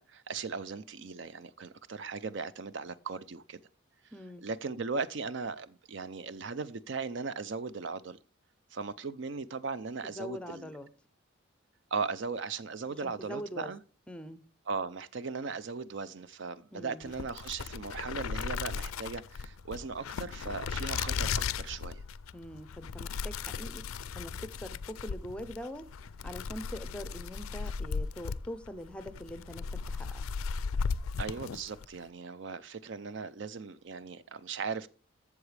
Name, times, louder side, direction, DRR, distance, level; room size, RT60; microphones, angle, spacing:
voice 1, 0.0-3.6 4.0-4.1 4.4-8.2 8.7-10.7 11.9-13.8 14.7-22.0 31.2-34.9, right 4 dB, 60° right, 0.5 m, -38 dB
voice 2, 4.1-4.5 10.0-10.9 13.0-13.7 14.1-14.4 16.7-17.1 22.3-25.9 26.2-30.2, equal, 5° left, 0.5 m, -43 dB
sound 1, 17.0-31.9, left 5 dB, 85° left, 0.4 m, -36 dB
13.0 x 7.2 x 3.3 m
head